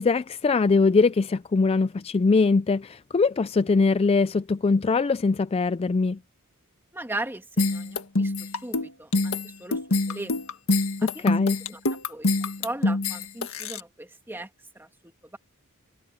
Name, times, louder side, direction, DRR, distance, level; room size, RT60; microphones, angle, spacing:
voice 1, 0.0-6.2 11.0-11.6, left 4 dB, 25° left, 0.3 m, -22 dB
voice 2, 6.9-8.3 8.6-9.8 10.1-10.3 11.2-11.3 11.7-11.8 12.1-14.5 14.8-14.9, right 2 dB, 10° right, 1.8 m, -37 dB
sound 1, 7.6-13.8, left 2 dB, 65° left, 1.7 m, -25 dB
head